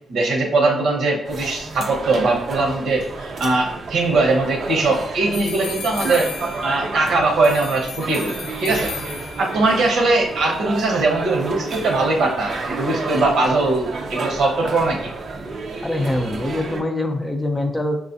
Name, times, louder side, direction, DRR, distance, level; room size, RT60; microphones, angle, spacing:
voice 1, 0.1-6.3 6.6-8.9 9.4-15.1, right 2 dB, 75° right, -1 dB, 1.0 m, -20 dB
sound 1, 1.2-16.8, right 3 dB, 50° right, 0.5 m, -31 dB
sound 2, 5.3-7.0 7.4-9.6, left 7 dB, 75° left, 0.5 m, -34 dB
voice 2, 15.8-18.0, left 1 dB, 10° left, 4 dB, 0.5 m, -24 dB
6.3 x 2.4 x 2.6 m, 0.76 s
cardioid pair, 135°, 0 cm